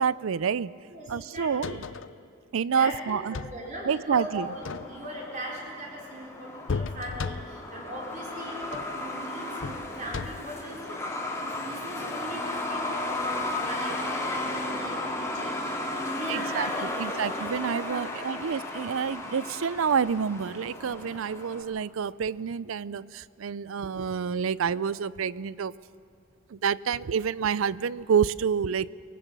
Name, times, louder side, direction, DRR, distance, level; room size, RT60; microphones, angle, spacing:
voice 1, 0.0-0.7 1.1-1.8 2.5-3.3 3.8-4.5 16.3-16.7 17.0-25.7 26.5-28.9, right 6 dB, 75° right, 20 dB, 0.4 m, -28 dB
voice 2, 0.9-1.8 2.6-4.5 4.8-17.1 17.7-18.4, right 1 dB, 35° right, -2 dB, 4.2 m, -39 dB
sound 1, 1.4-2.2 3.1-3.7 4.5-5.2 6.7-7.7 8.6-9.0 9.6-10.6 12.3-12.4, left 4 dB, 65° left, 0.5 m, -35 dB
Truck, 4.2-21.6, left 2 dB, 15° left, 2.3 m, -34 dB
23.5 x 19.5 x 6.8 m, 2.4 s
head